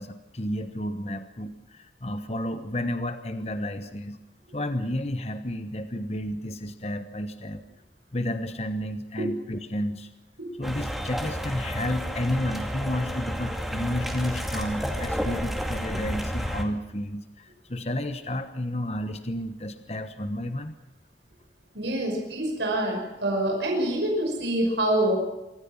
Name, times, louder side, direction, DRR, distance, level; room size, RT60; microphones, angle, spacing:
voice 1, 0.0-4.2 4.5-7.6 8.1-10.1 10.6-20.7, left 1 dB, 35° left, 9 dB, 1.2 m, -31 dB
sound 1, 10.6-16.6, equal, ahead, 2.3 m, -31 dB
voice 2, 21.7-25.2, right 1 dB, 85° right, 0 dB, 5.8 m, -26 dB
25.5 x 14.5 x 7.3 m, 1.0 s
head